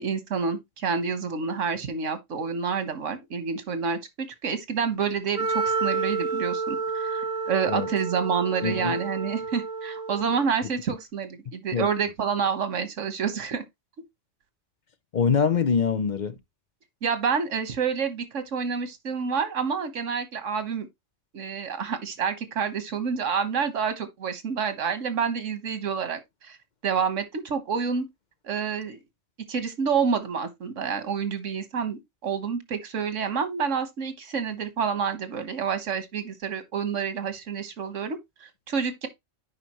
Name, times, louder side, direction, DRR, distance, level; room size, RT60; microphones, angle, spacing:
voice 1, 0.0-13.6 17.0-20.9 21.3-26.6 26.8-28.0 28.4-29.0 29.5-39.1, right 6 dB, 85° right, 1.5 m, -28 dB
Wind instrument woodwind instrument, 5.3-10.4, right 4 dB, 45° right, 1.7 m, -30 dB
voice 2, 8.6-9.0 11.7-11.9 15.1-16.3, left 6 dB, 45° left, 0.7 m, -24 dB
9.6 x 5.0 x 3.0 m
omnidirectional pair, 1.2 m